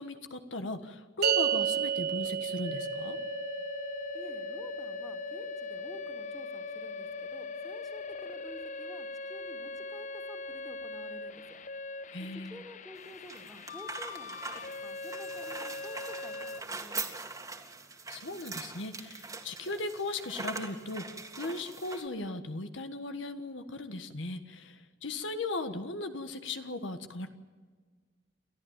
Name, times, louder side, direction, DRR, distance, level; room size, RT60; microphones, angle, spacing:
voice 1, 0.0-3.2 12.1-12.6 18.1-27.3, left 2 dB, 75° left, 8 dB, 1.5 m, -37 dB
sound 1, 1.2-7.8, right 9 dB, 55° right, 1.0 m, -34 dB
sound 2, 2.6-16.6, left 4 dB, 40° left, 0.7 m, -41 dB
voice 2, 4.1-11.6 12.4-14.4 14.8-17.3, equal, ahead, 4 dB, 2.4 m, -51 dB
sound 3, 13.0-22.1, right 3 dB, 20° right, 2.0 m, -42 dB
29.5 x 13.0 x 9.1 m, 1.5 s
head